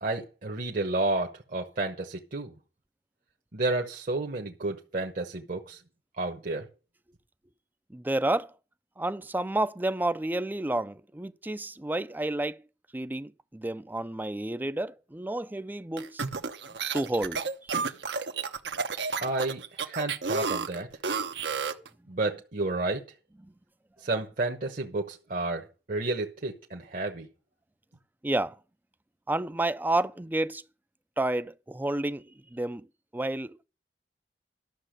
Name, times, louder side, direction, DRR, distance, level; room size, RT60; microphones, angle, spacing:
voice 1, 0.0-2.5 3.5-5.8 6.2-6.6 19.2-20.9 22.1-23.0 24.0-27.3, right 2 dB, 50° right, 1.1 m, -31 dB
voice 2, 7.9-8.5 9.0-12.6 12.9-16.2 16.9-17.4 17.7-17.8 23.4-23.5 28.2-28.6 29.3-30.6 31.2-32.9 33.1-33.6, right 1 dB, 10° right, 0.5 m, -30 dB
sound 1, 16.0-21.9, right 5 dB, 75° right, 1.0 m, -31 dB
12.0 x 6.7 x 6.5 m
head